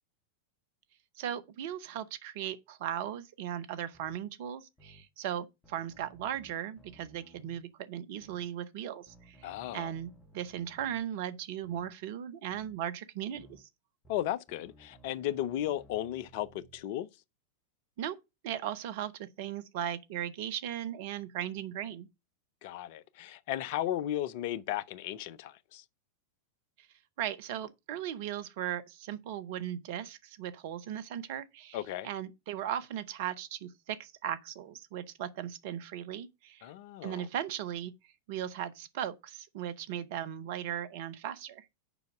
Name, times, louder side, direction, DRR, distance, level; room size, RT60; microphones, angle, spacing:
voice 1, 1.2-9.5 9.7-13.7 18.0-18.2 18.4-22.1 26.8-26.9 27.2-31.8 32.0-36.7 37.0-37.9 38.3-41.7, right 10 dB, 50° right, 0.8 m, -37 dB
sound 1, 3.9-4.2 4.8-5.0 5.6-7.6 8.2-8.5 9.1-11.0 11.6-11.9 12.5-12.8 13.3-13.6 14.0-16.8, right 1 dB, 15° left, 2.4 m, -59 dB
voice 2, 9.4-9.9 14.1-17.1 22.6-25.8 31.7-32.1 36.6-37.3, left 12 dB, 50° left, 0.5 m, -35 dB
7.0 x 5.2 x 5.9 m
figure-of-eight pair, 90°, 0 cm